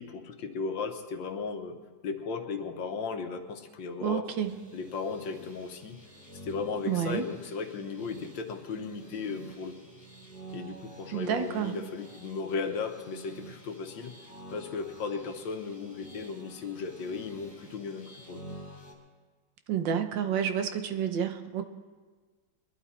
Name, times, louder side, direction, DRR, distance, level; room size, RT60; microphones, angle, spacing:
voice 1, 0.0-1.8 2.0-4.3 4.7-6.0 6.4-9.8 10.5-14.1 14.5-18.4, left 5 dB, 75° left, 6 dB, 1.7 m, -36 dB
voice 2, 4.0-4.6 6.9-7.2 11.1-11.8 19.7-21.6, right 8 dB, 75° right, 8 dB, 1.5 m, -29 dB
sound 1, 4.4-18.9, right 1 dB, 10° left, 2.6 m, -49 dB
22.0 x 11.5 x 4.2 m, 1.4 s
omnidirectional pair, 2.1 m